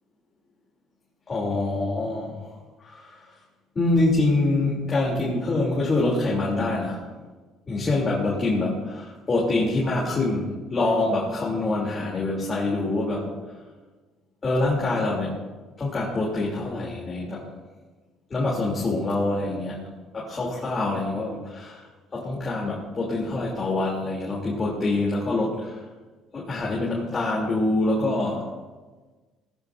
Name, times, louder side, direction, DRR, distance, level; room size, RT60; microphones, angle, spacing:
voice 1, 1.3-2.5 2.8-3.2 3.7-7.1 7.7-13.3 14.4-15.4 15.8-17.5 18.3-19.8 20.1-21.8 22.1-25.8 26.3-28.5, left 2 dB, 25° left, -4 dB, 3.1 m, -25 dB
18.5 x 14.0 x 2.7 m, 1.3 s
cardioid pair, 125°, 0 cm